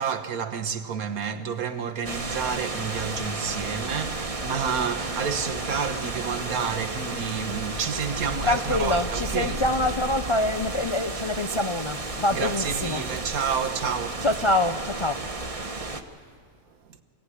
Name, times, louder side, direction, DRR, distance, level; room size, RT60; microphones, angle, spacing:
voice 1, 0.0-9.6 12.3-14.3 16.8-17.0, right 6 dB, 80° right, 1.6 m, -30 dB
sound 1, 2.0-16.0, right 2 dB, 25° right, 1.1 m, -32 dB
voice 2, 8.4-13.0 14.2-15.2, left 2 dB, 50° left, 0.3 m, -25 dB
24.0 x 17.0 x 9.7 m
omnidirectional pair, 1.5 m